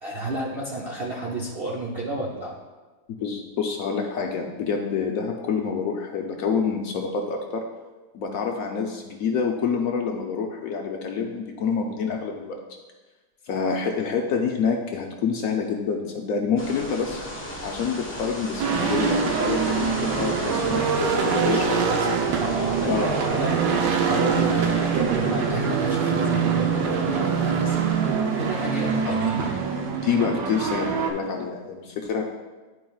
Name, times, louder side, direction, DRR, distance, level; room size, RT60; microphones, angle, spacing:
voice 1, 0.0-2.6 21.4-22.1 22.4-23.7 24.0-28.0 28.4-29.5, right 2 dB, 60° right, -3 dB, 0.6 m, -31 dB
voice 2, 3.2-7.6 8.1-12.6 13.4-17.2 17.6-21.9 22.9-23.2 28.9-29.1 29.9-32.2, left 5 dB, 70° left, 2 dB, 0.9 m, -27 dB
sound 1, 16.6-29.9, equal, 10° left, 0.8 m, -39 dB
sound 2, 18.6-31.1, right 6 dB, 85° right, 1.3 m, -24 dB
10.5 x 4.5 x 2.3 m, 1.3 s
omnidirectional pair, 1.8 m